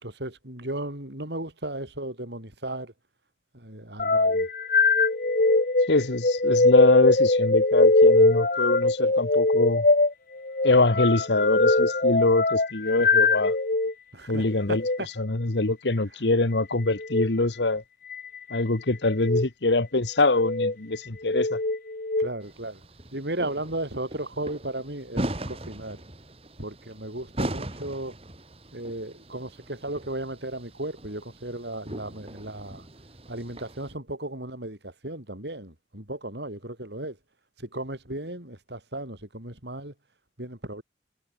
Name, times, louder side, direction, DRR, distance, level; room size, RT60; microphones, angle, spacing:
voice 1, 0.0-2.9 3.5-4.5 14.1-15.1 22.2-22.8 23.1-26.0 26.6-28.2 28.7-32.9 33.3-37.2 37.6-39.9 40.4-40.8, right 1 dB, 70° right, 5.5 m, -35 dB
sound 1, 4.0-13.9 14.7-15.0 17.0-17.3 18.1-18.6 19.2-19.5 20.2-20.7 21.2-22.3, left 2 dB, 50° left, 1.2 m, -22 dB
voice 2, 5.9-9.8 10.6-13.5 14.3-14.8 15.2-17.8 18.5-21.6, left 2 dB, 80° left, 1.5 m, -24 dB
sound 2, 22.4-33.9, right 1 dB, 35° right, 2.7 m, -39 dB
head